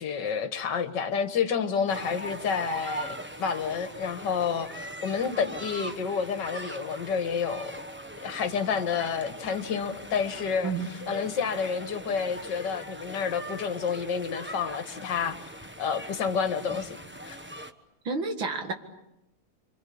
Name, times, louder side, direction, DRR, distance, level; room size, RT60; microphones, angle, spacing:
voice 1, 0.0-7.8 8.2-10.7 11.1-15.4 15.8-17.0 17.3-17.4, left 6 dB, 55° left, 9 dB, 2.1 m, -29 dB
sound 1, 1.9-17.7, right 1 dB, 10° right, 0.6 m, -41 dB
voice 2, 18.0-18.7, right 4 dB, 65° right, 6 dB, 2.8 m, -30 dB
27.5 x 25.0 x 8.6 m, 0.88 s
omnidirectional pair, 2.3 m